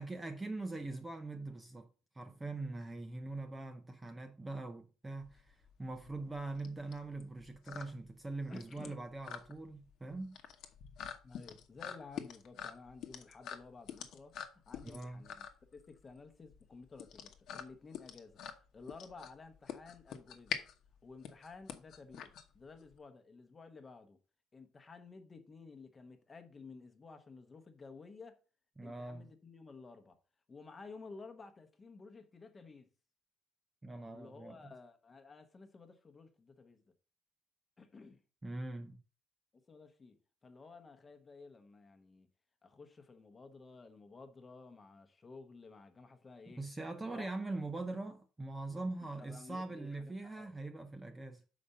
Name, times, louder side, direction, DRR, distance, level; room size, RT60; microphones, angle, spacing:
voice 1, 0.0-1.9 2.1-10.4 14.8-15.3 28.8-29.3 33.8-34.6 38.4-39.0 46.6-51.4, right 2 dB, 10° right, 0.5 m, -42 dB
sound 1, 5.2-23.0, left 8 dB, 50° left, 1.0 m, -46 dB
voice 2, 8.5-9.0 11.2-18.4 18.7-20.6 21.0-24.2 24.5-28.4 28.8-30.2 30.5-32.9 34.1-36.8 37.8-38.2 39.5-40.2 40.4-42.3 42.6-46.7 47.1-47.3 49.2-50.6, left 4 dB, 20° left, 0.9 m, -54 dB
6.8 x 5.0 x 5.4 m
cardioid pair, 170°, 0 cm